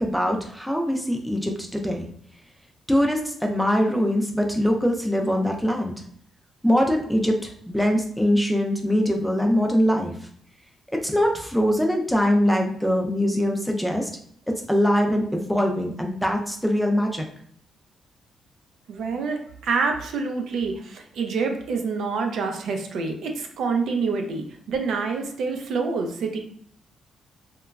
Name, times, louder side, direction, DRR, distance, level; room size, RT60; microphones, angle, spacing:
voice 1, 0.0-2.0 2.9-5.9 6.6-10.3 10.9-14.1 14.7-17.2, equal, ahead, 2 dB, 0.3 m, -22 dB
voice 2, 18.9-26.4, right 4 dB, 70° right, 4 dB, 0.4 m, -27 dB
2.9 x 2.2 x 2.3 m, 0.62 s
cardioid pair, 140°, 0 cm